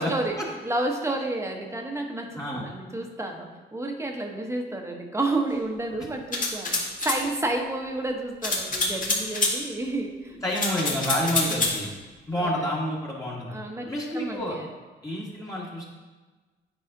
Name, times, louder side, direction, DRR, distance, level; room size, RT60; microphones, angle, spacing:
voice 1, 0.0-0.4 0.6-10.9 11.5-11.6 12.4-12.5 13.5-14.7, right 2 dB, 15° right, 2 dB, 0.9 m, -31 dB
sound 1, 6.3-7.2 8.4-9.5 10.5-11.8, left 3 dB, 40° left, 1.6 m, -26 dB
voice 2, 10.4-11.9 12.3-13.6 13.9-14.6 15.0-15.8, equal, 15° left, -5 dB, 1.4 m, -29 dB
9.2 x 4.8 x 2.7 m, 1.3 s
cardioid pair, 90°, 20 cm